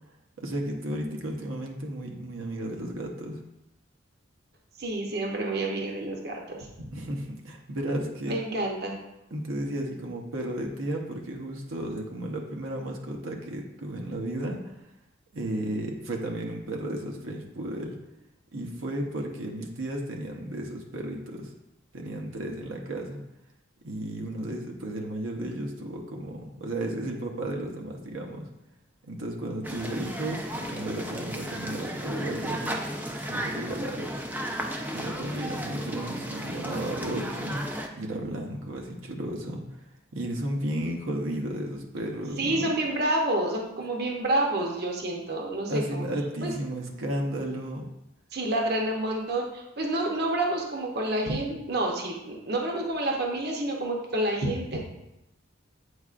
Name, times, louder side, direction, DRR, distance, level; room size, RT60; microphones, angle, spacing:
voice 1, 0.4-3.4 6.9-8.4 9.3-14.8 15.3-18.0 18.5-21.5 21.9-23.2 23.8-28.5 29.0-32.8 33.3-34.1 34.9-37.7 37.9-42.7 45.7-47.8, right 1 dB, 80° right, 1 dB, 0.8 m, -33 dB
voice 2, 4.8-6.9 8.2-9.0 42.4-46.0 46.4-46.5 48.3-54.8, right 1 dB, 50° right, 0 dB, 0.8 m, -29 dB
sound 1, 29.6-37.9, equal, 10° right, 0.4 m, -34 dB
8.0 x 4.7 x 2.5 m, 0.89 s
head